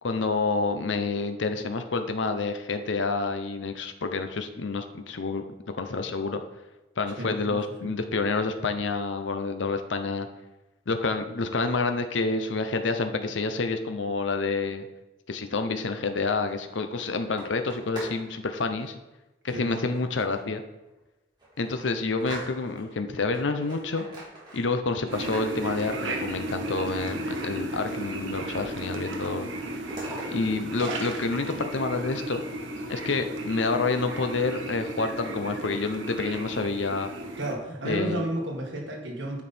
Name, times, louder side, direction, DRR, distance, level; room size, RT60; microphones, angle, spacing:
voice 1, 0.0-5.4 5.8-6.4 7.0-10.3 10.9-14.9 15.3-18.9 19.4-20.6 21.6-24.0 24.5-29.5 30.3-32.4 32.9-37.1 37.8-38.2, left 3 dB, 75° left, 7 dB, 0.7 m, -28 dB
voice 2, 7.2-7.9 19.5-19.7 37.4-39.4, right 1 dB, 70° right, 0 dB, 1.8 m, -32 dB
sound 1, 16.3-18.2 18.5-18.9 19.7-20.5 21.0-21.1 21.4-22.9 23.3-24.8 25.1-28.2 28.5-29.1 29.4-30.3, right 1 dB, 25° right, 2.8 m, -44 dB
sound 2, 25.1-37.5, right 1 dB, 90° right, 1.1 m, -34 dB
9.6 x 5.4 x 4.4 m, 1.0 s
head